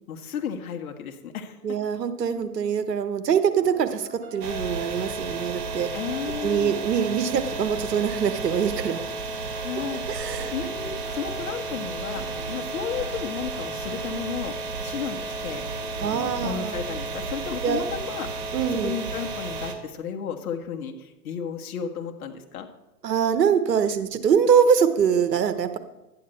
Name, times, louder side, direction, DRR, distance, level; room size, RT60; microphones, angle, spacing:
voice 1, 0.1-1.6 5.9-6.8 9.6-14.5 14.8-15.6 16.0-18.3 18.7-22.7, left 7 dB, 60° left, 5 dB, 1.6 m, -33 dB
voice 2, 1.6-5.9 6.4-9.0 10.1-10.5 16.0-16.8 17.6-17.8 18.5-19.0 23.0-25.8, right 7 dB, 80° right, 10 dB, 1.2 m, -23 dB
sound 1, 3.6-17.3, right 2 dB, 15° right, 1.8 m, -46 dB
sound 2, 4.4-19.7, right 3 dB, 65° right, 2.1 m, -33 dB
12.0 x 9.3 x 4.4 m, 0.98 s
hypercardioid pair, 125°, 48 cm